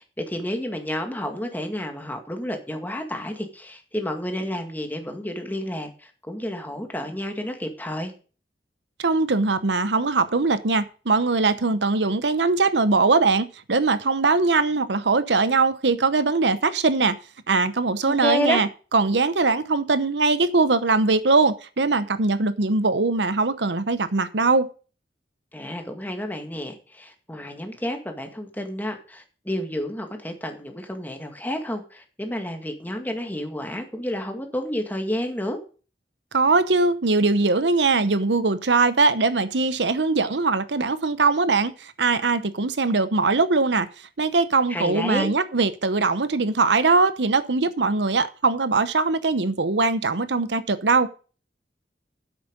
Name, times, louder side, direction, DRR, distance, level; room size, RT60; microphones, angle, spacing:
voice 1, 0.0-8.1 18.1-18.6 25.5-35.6 44.7-45.3, left 1 dB, 10° left, 2.0 m, -30 dB
voice 2, 9.0-17.2 17.5-24.7 36.3-43.9 44.2-51.1, right 3 dB, 85° right, 0.9 m, -21 dB
10.0 x 8.2 x 5.3 m
head